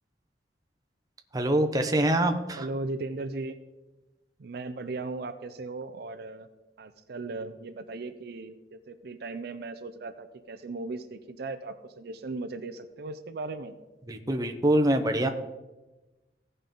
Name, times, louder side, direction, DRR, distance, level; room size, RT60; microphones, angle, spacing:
voice 1, 1.3-2.7 14.1-15.3, right 1 dB, 20° right, 5 dB, 0.7 m, -24 dB
voice 2, 2.6-3.6 4.4-6.5 6.8-13.8, right 3 dB, 60° right, 9 dB, 0.5 m, -37 dB
16.0 x 5.4 x 3.7 m, 1.1 s
head